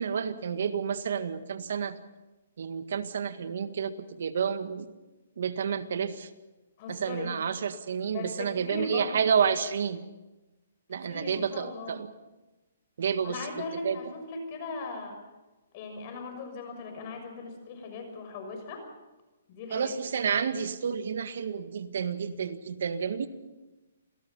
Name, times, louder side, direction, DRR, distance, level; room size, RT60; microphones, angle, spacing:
voice 1, 0.0-2.0 2.6-4.9 5.4-6.3 6.9-10.0 10.9-12.1 13.0-13.5 13.8-14.0 19.7-23.3, right 7 dB, 65° right, 10 dB, 1.8 m, -30 dB
voice 2, 6.8-7.4 8.0-9.1 11.0-12.0 13.2-15.2 15.7-18.9 19.5-19.9, left 3 dB, 40° left, 5 dB, 6.3 m, -38 dB
28.0 x 18.0 x 5.7 m, 1.1 s
hypercardioid pair, 150°, 0 cm